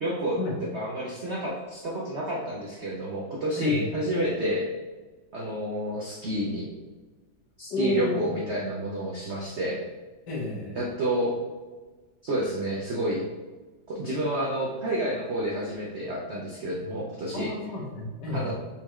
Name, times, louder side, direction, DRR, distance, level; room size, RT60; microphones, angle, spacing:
voice 1, 0.0-0.4 0.7-4.7 5.3-6.7 7.6-9.8 10.7-11.3 12.2-13.2 13.9-17.5 18.3-18.5, equal, 90° right, -4 dB, 0.5 m, -29 dB
voice 2, 3.6-3.9 7.7-8.2 10.3-10.8 17.3-18.5, left 2 dB, 65° left, -3 dB, 1.5 m, -30 dB
4.3 x 3.7 x 3.0 m, 1.3 s
omnidirectional pair, 2.2 m